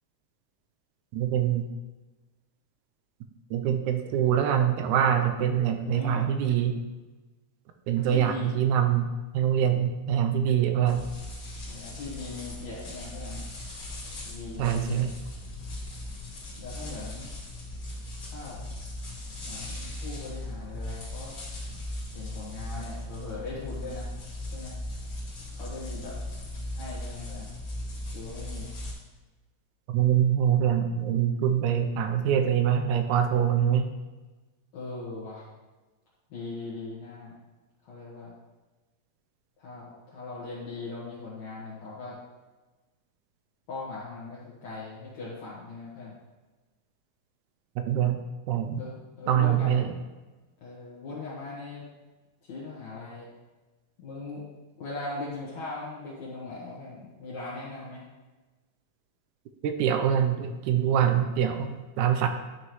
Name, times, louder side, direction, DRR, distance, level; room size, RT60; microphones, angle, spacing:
voice 1, 1.1-1.7 3.5-6.8 7.9-11.1 14.6-15.1 29.9-33.9 47.9-48.2 48.5-48.8 49.3-49.9 59.6-62.3, right 9 dB, 80° right, 6 dB, 1.9 m, -24 dB
voice 2, 5.9-6.3 8.0-8.6 11.7-13.4 14.3-15.0 16.6-17.3 18.3-18.6 19.4-21.4 22.1-24.1 24.5-24.8 25.5-26.2 26.7-27.5 28.1-28.7 34.7-35.5 36.3-37.4 37.8-38.3 39.6-42.1 43.7-46.1 48.8-49.8 50.6-51.8 52.5-53.3 54.0-54.4 54.8-58.0, left 3 dB, 60° left, -8 dB, 2.7 m, -39 dB
sound 1, 10.9-28.9, left 1 dB, 40° left, 2.7 m, -38 dB
11.0 x 6.1 x 3.1 m, 1.2 s
omnidirectional pair, 3.8 m